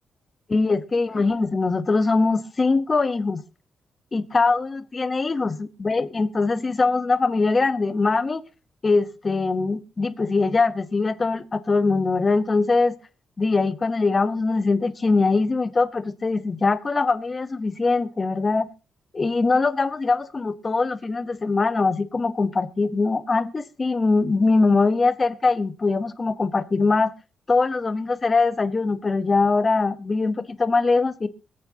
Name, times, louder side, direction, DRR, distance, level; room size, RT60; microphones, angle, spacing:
voice 1, 0.5-3.4 4.1-8.4 8.8-13.0 13.4-18.7 19.1-27.1 27.5-31.3, left 3 dB, 25° left, 0.9 m, -22 dB
24.5 x 8.6 x 2.8 m
wide cardioid pair, 160°, 0 cm